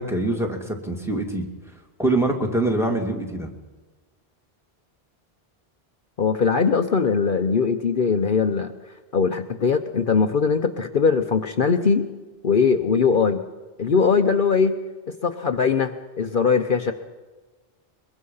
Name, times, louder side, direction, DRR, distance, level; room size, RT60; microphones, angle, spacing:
voice 1, 0.0-1.5 2.0-3.5, right 2 dB, ahead, 1 dB, 2.4 m, -24 dB
voice 2, 6.2-8.7 9.1-12.1 12.4-13.4 13.8-14.8 15.2-16.9, left 5 dB, 55° left, 7 dB, 1.0 m, -20 dB
22.5 x 22.0 x 5.6 m, 1.2 s
omnidirectional pair, 1.1 m